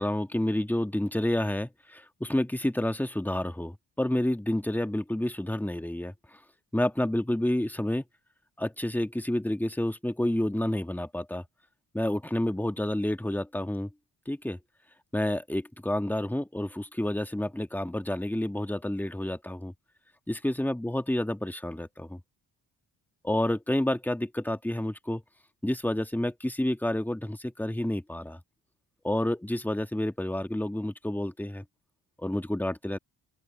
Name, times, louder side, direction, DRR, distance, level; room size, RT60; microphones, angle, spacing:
voice 1, 0.0-6.4 6.7-8.0 8.6-11.4 11.9-13.9 14.3-14.6 15.1-19.7 20.3-22.2 23.2-25.2 25.6-28.4 29.0-31.6 32.2-33.0, left 1 dB, 5° left, 1.6 m, -29 dB
open air
cardioid pair, 95°, 42 cm